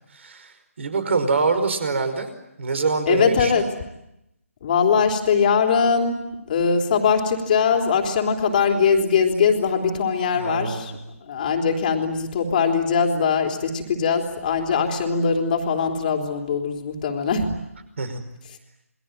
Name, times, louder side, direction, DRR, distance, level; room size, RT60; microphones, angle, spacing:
voice 1, 0.1-2.3 2.6-3.7 10.3-11.0 18.0-18.2, right 4 dB, 50° right, 10 dB, 5.2 m, -25 dB
voice 2, 3.1-3.6 4.6-6.2 6.5-10.9 11.2-17.5, left 6 dB, 35° left, 3 dB, 3.5 m, -21 dB
28.5 x 21.5 x 9.1 m, 0.88 s
figure-of-eight pair, 150°, 8 cm